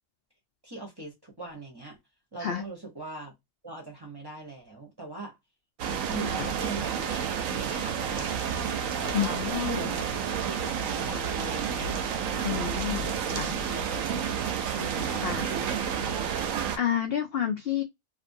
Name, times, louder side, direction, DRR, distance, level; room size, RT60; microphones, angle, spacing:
voice 1, 0.6-2.0 2.3-3.3 3.6-5.4 6.1-7.2 7.5-8.5 9.0-10.1 10.4-12.0 12.4-12.8 13.2-13.4 13.7-14.2 14.8-16.0, right 2 dB, 20° right, 0.7 m, -41 dB
sound 1, 5.8-16.8, right 7 dB, 70° right, 0.9 m, -30 dB
voice 2, 9.1-9.9 12.4-13.5 15.2-15.4 16.8-17.8, left 9 dB, 70° left, 0.5 m, -30 dB
2.6 x 2.6 x 2.5 m
omnidirectional pair, 1.5 m